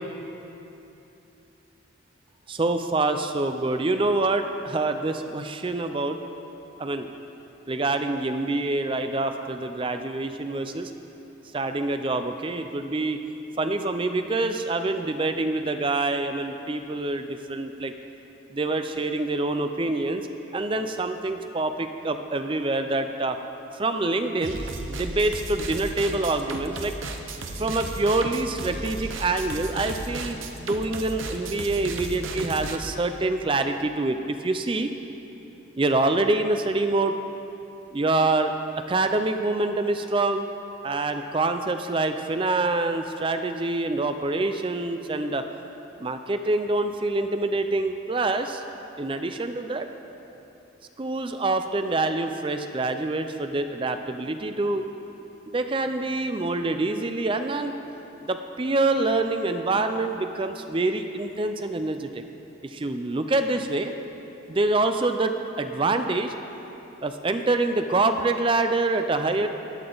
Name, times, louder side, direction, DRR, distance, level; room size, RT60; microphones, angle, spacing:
voice 1, 2.5-6.2 6.8-7.1 7.7-10.9 11.5-13.2 13.6-17.9 18.5-20.3 20.5-23.4 23.7-24.6 24.9-26.9 27.6-34.9 35.8-37.1 37.9-38.5 38.9-40.4 40.8-45.4 46.0-48.6 49.0-49.9 51.0-54.8 55.5-57.7 58.3-62.2 62.7-63.9 64.5-66.3 67.0-69.5, right 2 dB, 25° right, 8 dB, 0.4 m, -26 dB
sound 1, 24.4-32.8, right 2 dB, 80° right, 0.9 m, -34 dB
15.5 x 11.0 x 3.9 m, 3.0 s
head